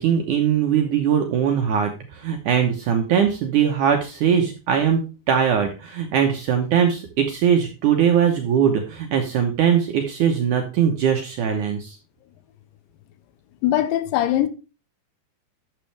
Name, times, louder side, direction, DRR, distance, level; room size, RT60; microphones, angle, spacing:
voice 1, 0.0-5.0 5.3-12.0, right 8 dB, 80° right, 1.7 m, -21 dB
voice 2, 13.6-14.5, left 12 dB, 85° left, 3.2 m, -21 dB
12.0 x 7.3 x 3.4 m
omnidirectional pair, 5.2 m